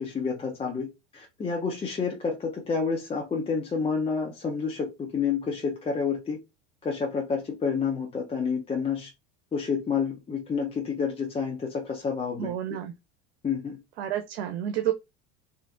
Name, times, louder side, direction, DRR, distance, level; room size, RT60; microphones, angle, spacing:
voice 1, 0.0-6.4 6.8-9.1 9.5-12.5 13.4-13.8, left 5 dB, 20° left, 0.7 m, -29 dB
voice 2, 12.4-12.9 14.0-14.9, right 11 dB, 85° right, 0.6 m, -29 dB
3.3 x 2.6 x 2.5 m
supercardioid pair, 105°, 31 cm